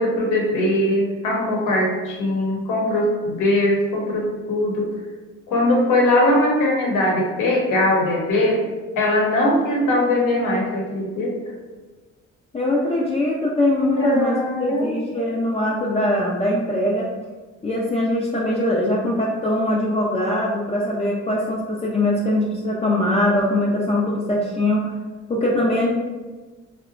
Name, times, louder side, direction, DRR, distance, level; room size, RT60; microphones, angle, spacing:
voice 1, 0.0-4.9 5.5-8.6 9.0-11.4 13.9-14.9, left 1 dB, 90° left, -2 dB, 0.8 m, -20 dB
voice 2, 12.5-17.1 17.6-24.9 25.3-25.9, left 1 dB, 20° left, -5 dB, 0.4 m, -22 dB
2.7 x 2.1 x 2.4 m, 1.3 s
cardioid pair, 90°, 30 cm